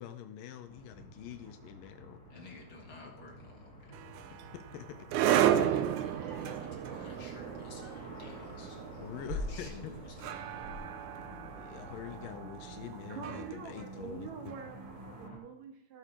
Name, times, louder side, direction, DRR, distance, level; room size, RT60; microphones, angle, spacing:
voice 1, 0.0-2.2 4.7-5.0 9.0-9.9 11.5-14.3, left 9 dB, 85° left, 7 dB, 2.5 m, -45 dB
sound 1, 0.7-15.4, equal, 25° left, 4.1 m, -51 dB
voice 2, 1.6-2.0 13.1-16.0, right 6 dB, 65° right, 4 dB, 2.2 m, -46 dB
voice 3, 2.3-4.1 5.1-8.8 9.5-10.5, left 2 dB, 45° left, -1 dB, 2.3 m, -52 dB
sound 2, 3.9-15.1, right 11 dB, 80° right, 1.9 m, -34 dB
sound 3, 5.4-10.8, left 1 dB, 35° right, 2.4 m, -45 dB
17.5 x 6.1 x 4.4 m, 0.81 s
omnidirectional pair, 4.0 m